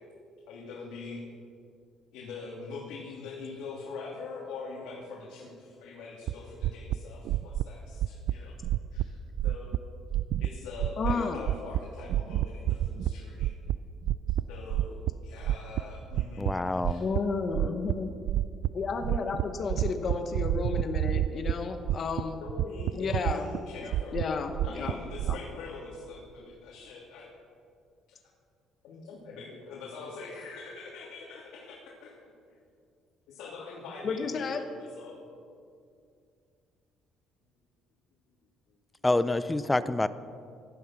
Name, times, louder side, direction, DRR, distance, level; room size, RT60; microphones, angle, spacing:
voice 1, 0.5-1.2 2.1-8.6 8.9-9.8 10.4-13.5 14.5-17.0 22.3-27.3 28.8-32.1 33.3-34.6 34.9-35.2, left 4 dB, 90° left, -5 dB, 3.1 m, -43 dB
sound 1, 6.3-6.4 6.6-7.0 7.3-7.6 8.0-8.3 8.6-9.0 9.4-9.8 10.1-10.5 10.8-11.2 11.4-11.8 12.1-13.1 13.4-13.8 14.1-14.4 14.7-15.1 15.4-16.5 16.8-17.2 17.5-17.9 18.3-18.7 19.0-19.4 19.7-21.5 21.8-22.2 22.5-23.6 23.9-25.4, right 13 dB, 65° right, 0.3 m, -28 dB
voice 2, 11.0-11.4 17.0-18.1 18.7-22.4 22.9-23.5 24.1-25.0 25.3-25.4 34.0-34.6, left 4 dB, 35° left, 6 dB, 1.0 m, -32 dB
voice 3, 16.4-17.1 39.0-40.1, left 2 dB, 10° left, 14 dB, 0.4 m, -27 dB
17.5 x 11.5 x 6.1 m, 2.4 s
cardioid pair, 155°, 0 cm